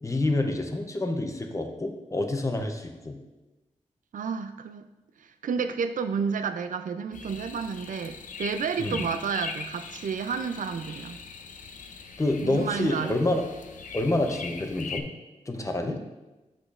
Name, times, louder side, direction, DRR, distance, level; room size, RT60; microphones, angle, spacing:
voice 1, 0.0-3.2 8.8-9.0 12.2-13.4 13.9-15.1 15.5-16.0, left 2 dB, 25° left, 4 dB, 0.7 m, -27 dB
voice 2, 4.1-4.9 5.4-11.2 12.4-13.2 15.9-16.0, right 6 dB, 85° right, 10 dB, 0.4 m, -31 dB
sound 1, 7.1-15.0, left 5 dB, 80° left, 0.5 m, -41 dB
8.2 x 4.9 x 2.5 m, 1.1 s
wide cardioid pair, 75°, 13 cm